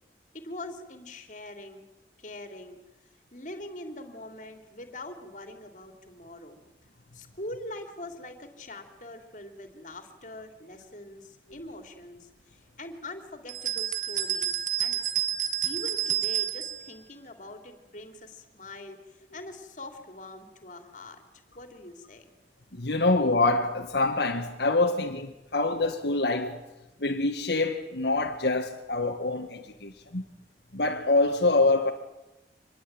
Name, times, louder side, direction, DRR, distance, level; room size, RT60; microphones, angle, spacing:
voice 1, 0.3-1.9 2.2-2.8 3.3-6.6 7.1-15.0 15.6-21.2 21.5-22.3, left 1 dB, 45° left, 3.4 m, -43 dB
sound 1, 13.5-16.8, right 10 dB, 45° right, 1.9 m, -29 dB
voice 2, 22.7-26.6 27.0-30.2 30.7-31.9, left 2 dB, 70° left, 1.8 m, -25 dB
26.0 x 20.5 x 9.1 m
head